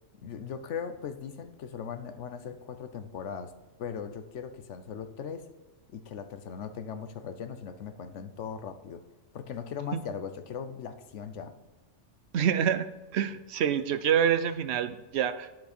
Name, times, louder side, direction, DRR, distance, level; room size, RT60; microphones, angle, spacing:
voice 1, 0.2-3.5 3.8-5.5 5.9-9.0 9.3-11.5, left 7 dB, 80° left, 10 dB, 1.1 m, -39 dB
voice 2, 12.3-15.5, right 8 dB, 70° right, 12 dB, 0.9 m, -27 dB
9.5 x 7.6 x 4.4 m, 1.1 s
omnidirectional pair, 1.2 m